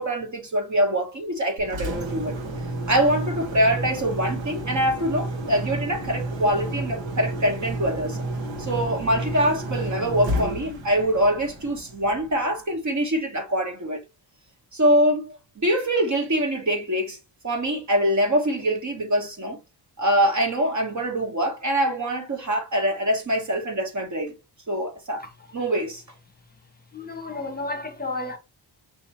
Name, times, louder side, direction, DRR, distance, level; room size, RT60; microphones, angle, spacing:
voice 1, 0.0-2.3 2.9-8.2 8.6-14.0 14.7-17.2 17.4-19.6 20.0-24.3 24.7-25.2 25.5-26.0, equal, 40° right, 1.2 m, -24 dB
Engine, 1.6-12.5, right 1 dB, 80° right, 1.3 m, -31 dB
voice 2, 26.9-28.4, left 2 dB, 20° left, 1.0 m, -32 dB
5.8 x 2.9 x 2.8 m
wide cardioid pair, 140°, 45 cm